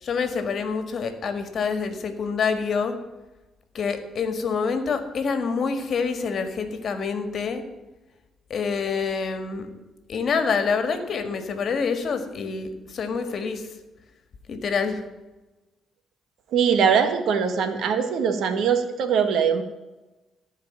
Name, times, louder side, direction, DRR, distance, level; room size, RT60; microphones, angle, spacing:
voice 1, 0.0-3.0 3.7-7.6 8.5-9.7 10.1-13.7 14.5-15.0, left 5 dB, 55° left, 8 dB, 1.8 m, -26 dB
voice 2, 16.5-19.6, right 7 dB, 75° right, 7 dB, 1.5 m, -22 dB
14.5 x 5.0 x 8.9 m, 1.1 s
cardioid pair, 90°, 0 cm